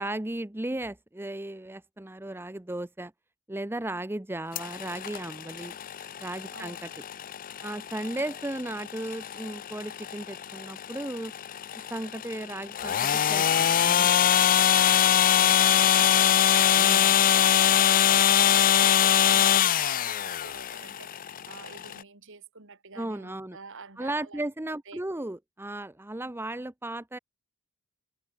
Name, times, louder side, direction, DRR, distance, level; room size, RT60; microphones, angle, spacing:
voice 1, 0.0-3.1 3.5-5.7 6.2-6.9 7.6-11.3 11.7-14.3 15.4-15.5 16.7-17.2 23.0-23.6 24.0-27.2, right 1 dB, 10° right, 0.7 m, -35 dB
sound 1, 4.6-22.0, left 10 dB, 40° left, 0.5 m, -23 dB
voice 2, 6.5-6.8 14.8-24.4 24.9-25.0, right 4 dB, 60° right, 3.9 m, -48 dB
head